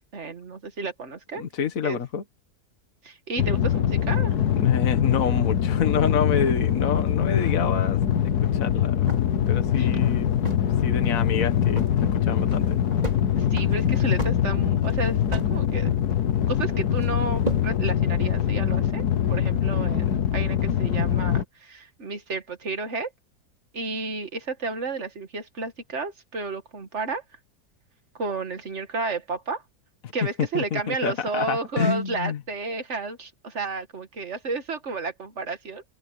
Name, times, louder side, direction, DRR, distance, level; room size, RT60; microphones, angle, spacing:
voice 1, 0.1-1.4 1.8-2.0 3.0-4.4 9.8-9.9 13.4-15.9 16.5-23.1 23.7-27.2 28.1-29.6 30.1-35.8, right 3 dB, 45° right, 2.1 m, -32 dB
voice 2, 1.4-2.2 4.5-8.0 8.5-9.1 9.5-10.5 10.8-11.8 12.1-12.8 30.5-32.4, left 6 dB, 60° left, 1.8 m, -28 dB
sound 1, 3.4-21.4, left 10 dB, 85° left, 1.7 m, -23 dB
sound 2, 9.1-10.8 11.1-11.2 11.5-12.0 12.4-13.2 13.5-15.6 15.8-16.5 17.0-17.7, right 2 dB, 25° right, 4.2 m, -34 dB
open air
omnidirectional pair, 1.7 m